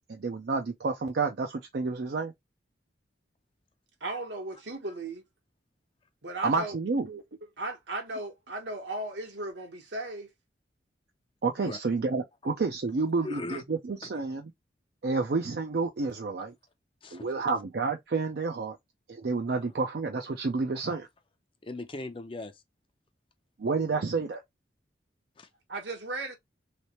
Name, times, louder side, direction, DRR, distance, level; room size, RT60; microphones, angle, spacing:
voice 1, 0.1-2.3 6.4-7.2 11.4-14.5 15.0-16.5 17.1-18.8 19.1-21.1 23.6-24.4, right 4 dB, 60° right, 0.5 m, -30 dB
voice 2, 4.0-5.2 6.2-6.7 7.6-10.3 25.7-26.4, right 2 dB, 80° right, 1.2 m, -36 dB
voice 3, 13.2-13.6 17.0-17.3 20.8-21.0 21.6-22.6 25.4-25.5, left 2 dB, 30° left, 0.5 m, -39 dB
3.2 x 3.2 x 2.9 m
head